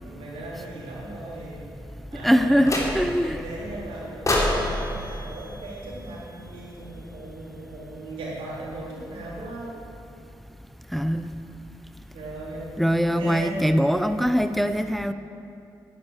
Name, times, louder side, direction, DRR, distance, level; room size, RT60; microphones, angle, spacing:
voice 1, 0.0-1.6 2.1-2.8 3.2-9.8 12.1-13.6, right 2 dB, 85° right, -5 dB, 3.8 m, -38 dB
voice 2, 2.2-3.4 10.9-11.2 12.8-15.1, equal, ahead, 10 dB, 0.6 m, -22 dB
sound 1, 2.6-3.3 4.3-6.5, left 1 dB, 35° left, 3.3 m, -28 dB
10.0 x 10.0 x 8.4 m, 2.6 s
supercardioid pair, 55°, 9 cm